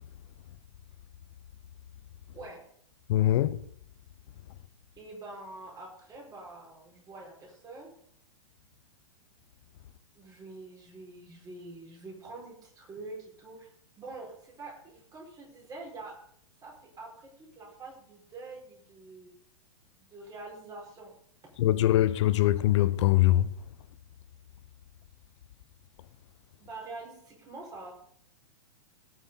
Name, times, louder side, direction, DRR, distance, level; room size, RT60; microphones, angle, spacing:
voice 1, 3.1-3.6 21.6-23.5, left 14 dB, 55° left, 1.0 m, -23 dB
voice 2, 5.0-7.9 10.2-13.7 14.0-16.1 16.6-19.3 20.0-21.1 26.6-27.9, right 3 dB, 20° right, 5.5 m, -45 dB
17.5 x 6.9 x 4.2 m
hypercardioid pair, 110°, 18 cm